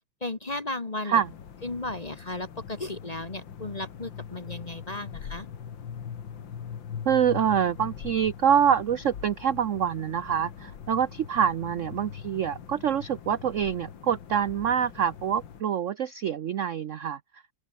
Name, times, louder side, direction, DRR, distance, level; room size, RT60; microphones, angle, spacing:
voice 1, 0.2-1.2 1.6-5.5, left 2 dB, 25° left, 1.1 m, -35 dB
sound 1, 1.2-15.6, left 8 dB, 70° left, 2.4 m, -42 dB
voice 2, 7.1-17.2, right 8 dB, 75° right, 0.7 m, -26 dB
open air
omnidirectional pair, 2.2 m